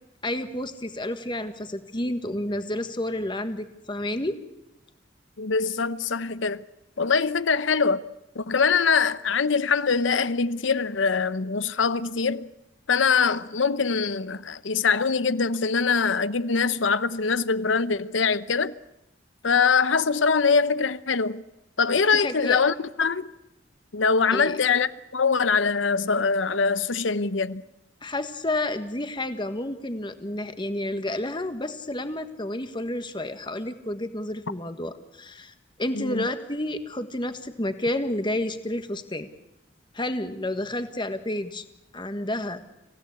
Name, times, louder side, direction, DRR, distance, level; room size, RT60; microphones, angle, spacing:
voice 1, 0.2-4.4 22.1-22.6 24.3-24.6 28.0-39.3 39.9-41.6 41.9-42.6, left 1 dB, 25° left, 1.5 m, -30 dB
voice 2, 5.4-6.6 7.0-8.0 8.3-12.5 12.9-18.7 19.4-21.4 21.8-23.3 23.9-27.6 35.9-36.3, left 5 dB, 80° left, 0.8 m, -23 dB
26.0 x 16.5 x 8.3 m
head